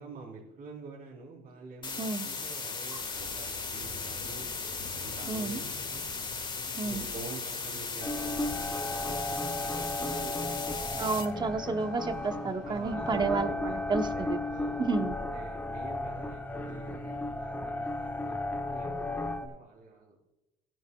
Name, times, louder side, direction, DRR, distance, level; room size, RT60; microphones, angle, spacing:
voice 1, 0.0-4.5 4.9-5.7 5.9-6.1 6.8-11.0 12.6-14.8 15.2-20.2, right 4 dB, 55° right, -6 dB, 3.8 m, -46 dB
sound 1, 1.8-11.2, left 4 dB, 25° left, 1.6 m, -37 dB
sound 2, 3.1-12.9, left 3 dB, 85° left, 3.0 m, -48 dB
voice 2, 5.3-5.6 6.8-7.0 10.9-14.4 14.8-15.2, right 4 dB, 25° right, 9 dB, 0.9 m, -31 dB
sound 3, 8.0-19.5, left 2 dB, 10° left, 1.1 m, -34 dB
15.5 x 10.5 x 2.3 m, 0.99 s
cardioid pair, 110°, 17 cm